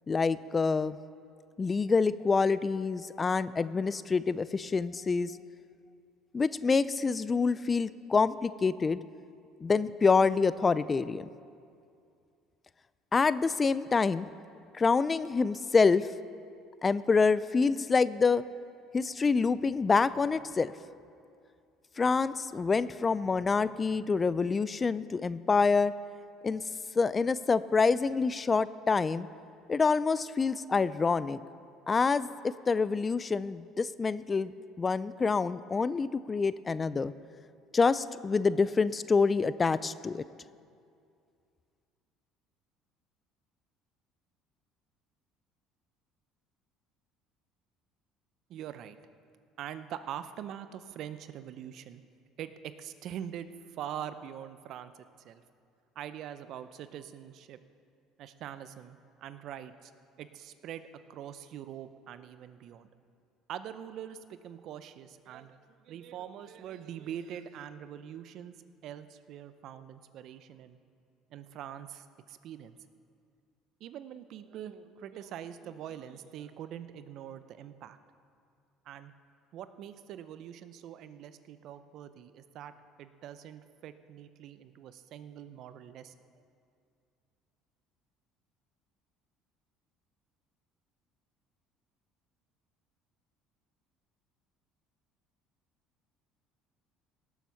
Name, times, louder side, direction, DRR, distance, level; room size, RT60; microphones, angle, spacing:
voice 1, 0.1-1.0 1.6-5.3 6.3-9.0 9.6-11.2 13.1-14.3 14.7-16.1 16.8-18.4 18.9-20.7 22.0-25.9 26.4-26.6 27.0-29.3 29.7-31.4 31.9-37.1 37.7-40.2, left 4 dB, 30° left, 17 dB, 0.4 m, -27 dB
voice 2, 48.5-49.0 49.6-52.0 52.4-54.9 55.2-55.4 56.0-57.6 58.2-59.9 60.2-62.9 63.5-68.5 68.8-70.8 71.3-72.8 73.8-78.0 78.8-79.1 79.5-86.1, right 10 dB, 60° right, 12 dB, 0.6 m, -43 dB
18.0 x 7.2 x 5.7 m, 2.4 s
supercardioid pair, 85°, 0 cm